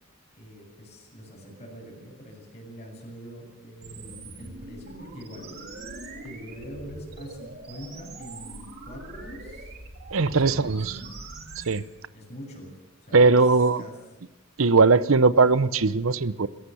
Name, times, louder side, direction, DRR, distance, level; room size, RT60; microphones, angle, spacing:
voice 1, 0.3-5.5 6.2-9.7 10.2-11.1 12.1-12.7 13.0-13.5 13.8-14.0, equal, 35° left, 7.3 m, -43 dB
sound 1, 3.8-11.8, right 2 dB, 50° right, 3.0 m, -42 dB
voice 2, 10.1-11.0 11.6-11.8 13.1-13.8 14.6-16.5, right 4 dB, 80° right, 0.8 m, -19 dB
27.0 x 14.5 x 7.1 m
head